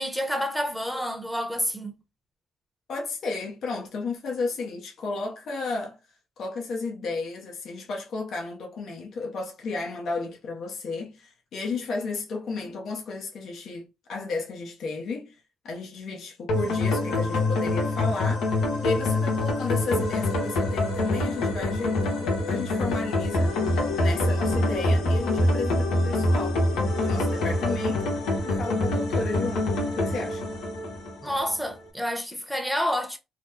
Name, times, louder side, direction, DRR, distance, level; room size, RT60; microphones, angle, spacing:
voice 1, 0.0-2.0 31.2-33.2, equal, ahead, 0.8 m, -29 dB
voice 2, 2.9-6.0 6.4-15.4 15.6-18.6 18.8-23.6 24.0-26.6 27.0-28.2 28.5-30.5, left 3 dB, 65° left, 0.8 m, -33 dB
sound 1, 16.5-31.5, left 2 dB, 85° left, 1.1 m, -25 dB
3.0 x 2.1 x 3.5 m
cardioid pair, 90°, 0 cm